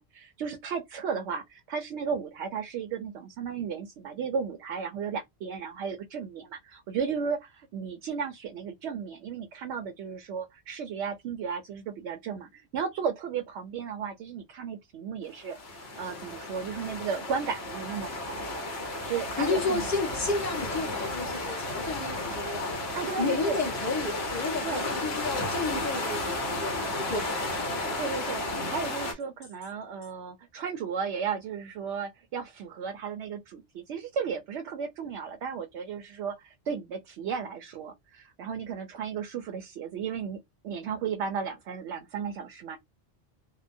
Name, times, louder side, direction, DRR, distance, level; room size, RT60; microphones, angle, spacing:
voice 1, 0.0-18.5 18.8-19.9 22.9-23.6 24.6-24.9 28.0-42.8, right 6 dB, 85° right, 0.9 m, -34 dB
sound 1, 15.4-29.1, left 2 dB, 70° left, 1.1 m, -33 dB
voice 2, 19.4-22.8 23.2-27.4 27.8-28.0 28.5-28.7, left 3 dB, 15° left, 0.9 m, -32 dB
2.8 x 2.1 x 2.5 m
omnidirectional pair, 1.1 m